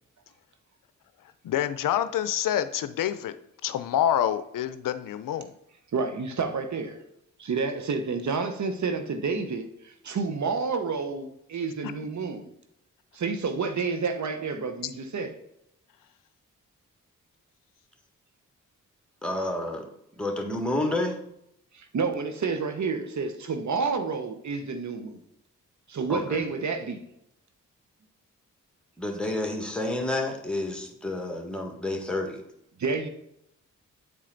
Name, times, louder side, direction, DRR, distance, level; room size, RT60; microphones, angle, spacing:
voice 1, 1.4-3.3 3.6-5.5, left 10 dB, 75° left, 12 dB, 0.5 m, -27 dB
voice 2, 5.9-7.0 7.4-12.5 13.1-15.4 21.7-25.2 25.9-27.0 32.8-33.1, right 4 dB, 60° right, 7 dB, 0.9 m, -29 dB
voice 3, 19.2-19.9 20.2-21.2 26.1-26.4 29.0-32.4, left 1 dB, 5° left, 3 dB, 1.7 m, -29 dB
8.6 x 4.3 x 3.9 m, 0.77 s
supercardioid pair, 45°, 32 cm